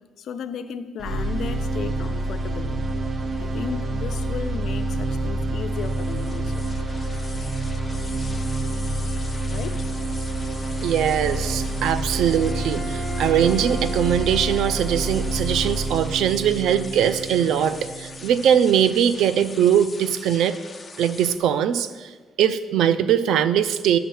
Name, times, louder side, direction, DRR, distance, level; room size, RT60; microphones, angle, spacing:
voice 1, 0.2-2.8 3.4-6.7 8.6-9.9, left 7 dB, 70° left, 10 dB, 0.6 m, -35 dB
sound 1, 1.0-19.0, right 2 dB, 40° right, 0.9 m, -28 dB
sound 2, 5.7-21.4, left 4 dB, 30° left, 0.9 m, -42 dB
voice 2, 10.8-20.6 21.0-22.1 22.4-24.0, right 9 dB, 80° right, 13 dB, 0.5 m, -21 dB
Bowed string instrument, 12.1-15.6, right 1 dB, 20° right, 1.6 m, -38 dB
10.0 x 5.9 x 7.0 m, 1.4 s
cardioid pair, 90°, 0 cm